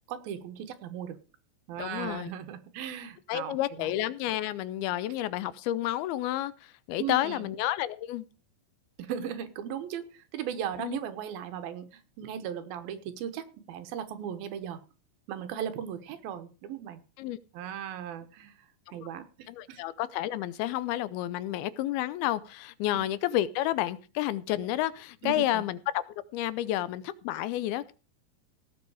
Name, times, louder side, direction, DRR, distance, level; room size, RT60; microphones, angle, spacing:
voice 1, 0.1-1.2 1.7-3.9 7.0-7.5 9.0-14.8 15.3-17.0 17.5-18.6 18.9-19.8 22.9-23.0 25.2-25.6, right 9 dB, 75° right, 9 dB, 2.9 m, -37 dB
voice 2, 1.8-2.3 3.3-8.3 10.8-11.0 17.2-17.4 19.5-26.0 26.3-27.9, left 14 dB, 85° left, 17 dB, 2.6 m, -30 dB
17.0 x 7.3 x 4.8 m, 0.35 s
omnidirectional pair, 4.3 m